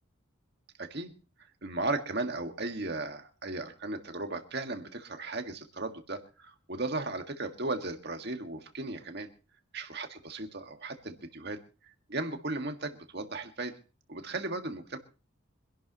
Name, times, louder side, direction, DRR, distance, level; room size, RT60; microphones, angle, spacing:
voice 1, 0.8-1.1 1.6-9.3 9.7-11.6 12.1-13.7 14.1-15.0, right 2 dB, 50° right, 5 dB, 1.8 m, -36 dB
25.0 x 11.5 x 3.0 m, 0.34 s
head